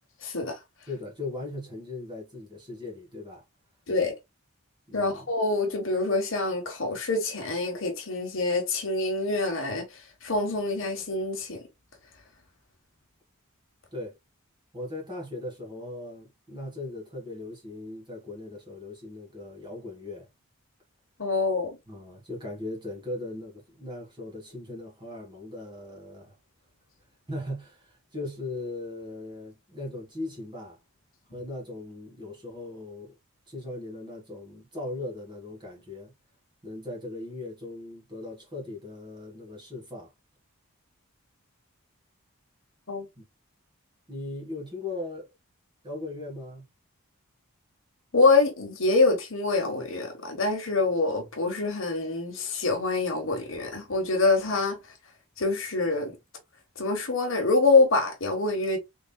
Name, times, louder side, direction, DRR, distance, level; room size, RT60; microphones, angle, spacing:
voice 1, 0.2-0.6 3.9-4.1 4.9-11.6 21.2-21.8 42.9-43.0 48.1-54.8 55.4-56.1 56.8-58.8, left 3 dB, 60° left, 1.2 m, -25 dB
voice 2, 0.9-3.4 4.9-5.3 13.9-14.2 14.7-20.3 21.9-26.4 27.3-30.8 31.3-33.2 33.5-36.1 36.6-40.1 43.2-43.3 44.1-45.3 45.8-46.6, left 2 dB, 20° right, 1.6 m, -38 dB
3.7 x 3.6 x 2.2 m
head